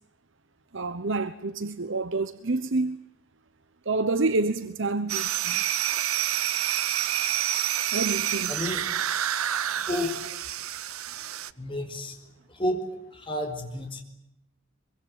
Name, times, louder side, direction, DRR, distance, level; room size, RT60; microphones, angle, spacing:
voice 1, 0.7-3.0 3.9-5.6 7.9-8.6, right 3 dB, 60° right, 1.0 m, -28 dB
sound 1, 5.1-11.5, right 11 dB, 85° right, 0.9 m, -28 dB
voice 2, 8.5-8.9 9.7-10.2 11.6-12.2 12.5-14.0, left 1 dB, 25° left, 4.4 m, -31 dB
24.0 x 24.0 x 8.7 m
head